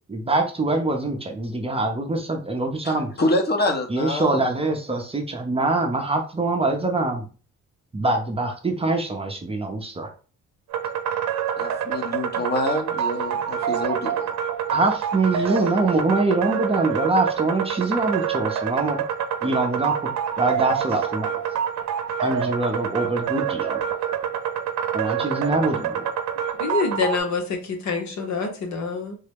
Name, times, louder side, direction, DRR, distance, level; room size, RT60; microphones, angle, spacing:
voice 1, 0.1-3.1 3.9-7.3 7.9-10.1 14.7-19.0 19.4-20.1 20.4-21.3 22.2-23.8 24.9-26.0, right 2 dB, 20° right, 3 dB, 0.6 m, -24 dB
voice 2, 3.2-4.5 11.6-14.3, left 1 dB, 35° left, 3 dB, 1.0 m, -26 dB
sound 1, 10.7-27.2, right 8 dB, 65° right, 0.7 m, -27 dB
voice 3, 26.6-29.2, left 4 dB, 65° left, 4 dB, 1.0 m, -26 dB
3.8 x 2.1 x 3.4 m, 0.37 s
cardioid pair, 90°, 30 cm